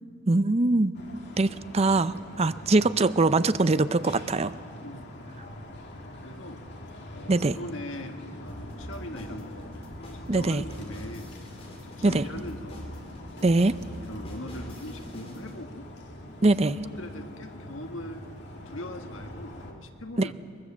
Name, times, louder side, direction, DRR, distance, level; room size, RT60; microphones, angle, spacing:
voice 1, 0.3-0.9 1.4-4.5 7.3-7.6 10.3-10.6 12.0-12.2 13.4-13.7 16.4-16.8 20.2-20.3, right 2 dB, 30° right, 13 dB, 0.6 m, -22 dB
sound 1, 0.9-19.7, left 1 dB, 60° left, 2.4 m, -44 dB
voice 2, 4.8-5.2 6.2-6.7 7.1-9.8 10.1-11.3 11.8-13.0 13.4-13.5 14.0-15.9 16.5-16.6 17.0-18.2 18.6-20.3, left 1 dB, 80° left, 5 dB, 1.6 m, -41 dB
sound 2, 8.5-15.6, equal, 30° left, 4.5 m, -43 dB
23.5 x 21.5 x 7.4 m, 2.2 s
head